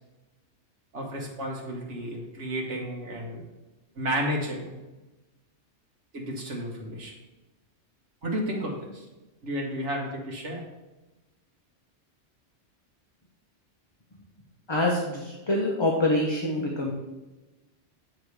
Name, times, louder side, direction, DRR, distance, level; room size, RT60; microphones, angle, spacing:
voice 1, 0.9-3.4 4.0-4.7 6.1-7.1 8.2-9.1 9.4-10.6, equal, 75° right, -1 dB, 1.8 m, -32 dB
voice 2, 14.7-16.9, left 1 dB, 25° left, -1 dB, 0.8 m, -25 dB
8.3 x 3.9 x 4.7 m, 1.1 s
omnidirectional pair, 1.2 m